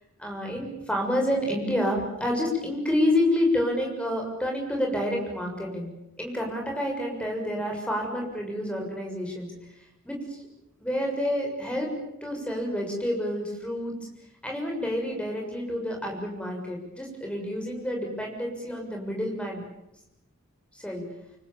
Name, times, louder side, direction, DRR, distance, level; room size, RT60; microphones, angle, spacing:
voice 1, 0.2-5.9 6.2-9.5 10.0-10.4 10.8-11.9 12.2-13.9 14.4-19.6 20.7-21.0, left 1 dB, 5° left, 1 dB, 6.9 m, -28 dB
29.0 x 25.0 x 7.4 m, 0.87 s
head